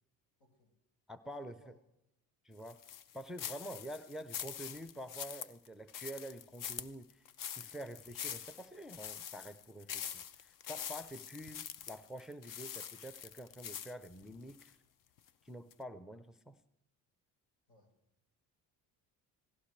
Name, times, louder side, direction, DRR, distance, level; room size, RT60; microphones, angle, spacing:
voice 1, 0.4-0.7 1.4-1.8 3.7-3.9 17.7-17.9, left 1 dB, 75° left, 1 dB, 5.1 m, -65 dB
voice 2, 1.1-1.6 2.4-2.8 3.1-7.2 7.5-14.8 15.4-16.6, right 1 dB, ahead, 12 dB, 0.5 m, -47 dB
sound 1, 2.7-14.7 15.2-15.3 15.7-15.8, left 9 dB, 55° left, 0.7 m, -45 dB
17.0 x 17.0 x 3.2 m, 0.85 s
cardioid pair, 105°, 38 cm